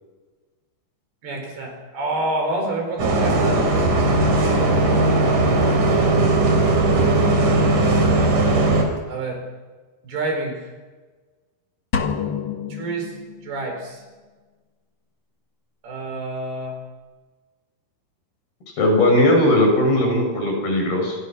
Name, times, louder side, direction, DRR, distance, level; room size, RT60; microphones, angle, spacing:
voice 1, 1.2-3.6 4.9-5.1 5.6-6.4 9.1-9.4 10.0-10.6 12.7-13.1 13.4-14.0 15.8-16.8, right 2 dB, 80° right, 3 dB, 6.5 m, -28 dB
Bus, 3.0-8.8, right 2 dB, 55° right, 5.0 m, -18 dB
sound 1, 11.9-13.7, left 6 dB, 55° left, 1.2 m, -28 dB
voice 2, 18.8-21.2, left 1 dB, 70° left, 2 dB, 8.3 m, -18 dB
27.0 x 23.0 x 6.2 m, 1.3 s
omnidirectional pair, 4.4 m